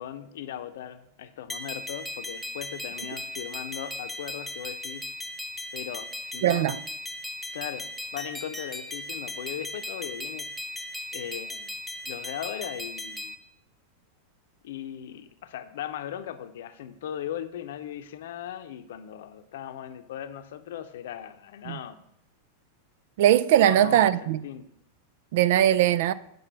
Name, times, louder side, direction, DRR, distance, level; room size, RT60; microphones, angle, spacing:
voice 1, 0.0-5.1 5.7-6.7 7.5-10.5 11.1-13.4 14.6-22.0 23.6-24.7, left 10 dB, 55° left, 0.7 m, -38 dB
sound 1, 1.5-13.3, left 1 dB, ahead, 0.9 m, -37 dB
voice 2, 6.4-6.8 21.7-21.8 23.2-24.4 25.3-26.1, right 11 dB, 55° right, 0.4 m, -20 dB
7.9 x 5.4 x 6.9 m
figure-of-eight pair, 90°, 0 cm